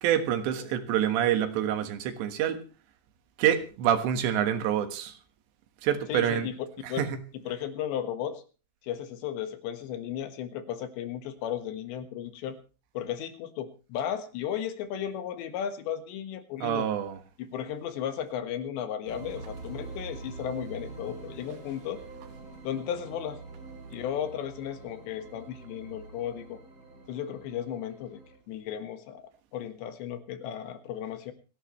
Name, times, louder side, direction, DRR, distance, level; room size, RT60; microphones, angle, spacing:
voice 1, 0.0-2.6 3.4-5.1 5.8-6.5 7.0-7.1 16.6-17.2, right 10 dB, 85° right, 9 dB, 3.8 m, -26 dB
voice 2, 6.1-7.1 7.3-8.4 8.8-12.6 13.0-16.9 17.4-22.0 22.6-23.4 23.9-26.6 27.1-28.2 28.5-29.2 29.5-31.3, left 9 dB, 90° left, 9 dB, 3.8 m, -35 dB
sound 1, 19.0-28.3, right 3 dB, 25° right, 6.5 m, -45 dB
28.5 x 11.0 x 3.2 m, 0.35 s
omnidirectional pair, 4.9 m